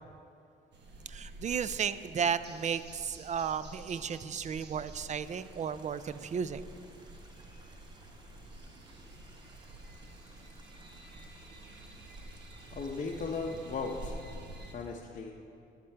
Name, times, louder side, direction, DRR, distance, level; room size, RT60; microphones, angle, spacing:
sound 1, 0.7-14.8, right 1 dB, 60° right, 1.2 m, -49 dB
voice 1, 1.1-6.6, right 7 dB, 35° right, 14 dB, 0.4 m, -34 dB
Stream, 5.2-14.9, right 1 dB, 20° right, 1.1 m, -60 dB
voice 2, 12.7-14.2 14.7-15.4, left 4 dB, 40° left, -1 dB, 0.7 m, -37 dB
11.0 x 7.4 x 4.5 m, 2.6 s
cardioid pair, 90°, 20 cm